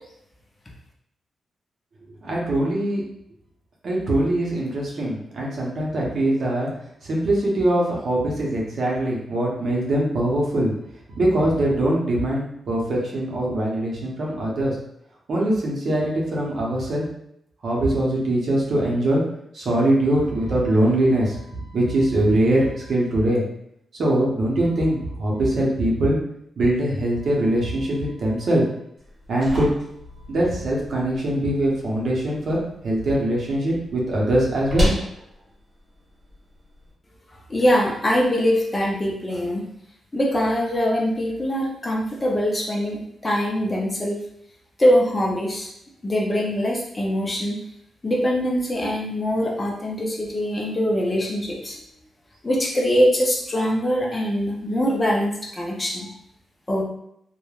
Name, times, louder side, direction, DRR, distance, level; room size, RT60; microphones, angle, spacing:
voice 1, 2.2-3.0 3.8-6.7 7.0-10.7 11.2-14.8 15.3-17.0 17.6-19.2 19.5-23.4 23.9-26.2 26.6-28.6 29.3-29.7 30.3-34.9, right 1 dB, 50° right, -3 dB, 0.7 m, -22 dB
sound 1, 29.0-36.9, left 1 dB, 25° right, 1.0 m, -33 dB
voice 2, 37.5-39.6 40.1-44.2 44.8-45.7 46.0-47.6 48.0-51.8 52.4-56.1 56.7-56.8, equal, 20° left, -2 dB, 0.4 m, -23 dB
3.2 x 2.1 x 2.3 m, 0.75 s
wide cardioid pair, 165°, 0 cm